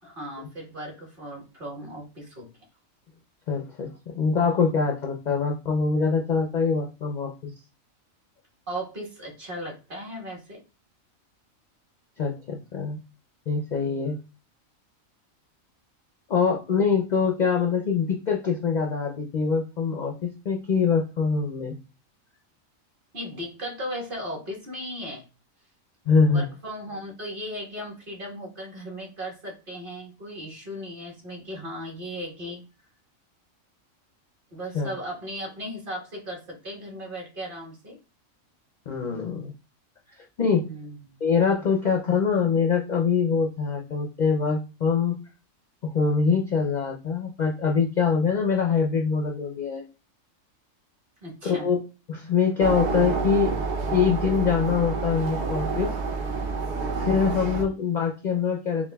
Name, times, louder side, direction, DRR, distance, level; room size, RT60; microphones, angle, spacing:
voice 1, 0.0-2.5 8.7-10.6 23.1-25.2 26.3-32.6 34.5-38.0 40.5-41.2 51.2-51.7, equal, 40° right, -2 dB, 1.5 m, -36 dB
voice 2, 3.5-7.5 12.2-13.0 13.5-14.2 16.3-21.7 26.1-26.5 34.7-34.9 38.9-39.5 40.4-40.7 41.2-45.2 45.8-49.8 51.4-53.5 53.9-55.9 57.1-58.9, left 5 dB, 60° left, 1 dB, 0.5 m, -24 dB
sound 1, 52.6-57.6, right 4 dB, 60° right, 0.9 m, -28 dB
7.0 x 2.5 x 2.2 m, 0.31 s
omnidirectional pair, 1.4 m